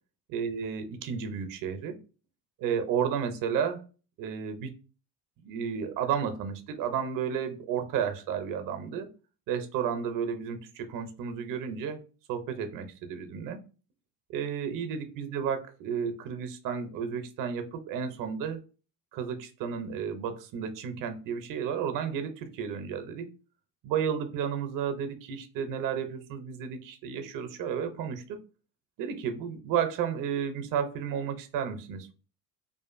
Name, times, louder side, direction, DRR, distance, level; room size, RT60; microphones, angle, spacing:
voice 1, 0.3-2.0 2.6-3.8 4.2-4.8 5.4-9.1 9.5-12.0 12.3-13.6 14.3-18.6 19.1-23.3 23.8-28.4 29.0-32.1, right 7 dB, 60° right, 7 dB, 0.5 m, -32 dB
2.5 x 2.4 x 2.4 m, 0.35 s
cardioid pair, 115°, 37 cm